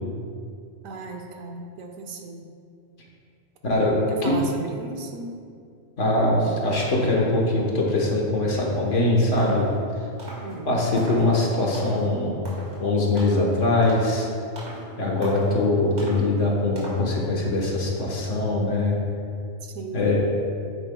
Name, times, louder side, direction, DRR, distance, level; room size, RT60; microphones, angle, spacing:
voice 1, 0.8-2.5 4.1-5.4 10.4-10.8 19.6-20.0, right 3 dB, 85° right, 2 dB, 1.2 m, -36 dB
voice 2, 3.6-4.3 6.0-9.7 10.6-12.4 12.8-14.3 15.0-19.0 19.9-20.2, left 2 dB, 65° left, -2 dB, 1.6 m, -22 dB
sound 1, 8.8-9.0 9.4-9.7 10.2-10.5 11.0-11.3 11.7-12.1 12.5-12.8 13.2-13.5 13.8-14.2 14.6-14.9 15.2-15.6 16.0-16.2 16.8-17.1, right 1 dB, 60° right, 2.3 m, -39 dB
9.9 x 8.6 x 2.3 m, 2.4 s
omnidirectional pair, 1.3 m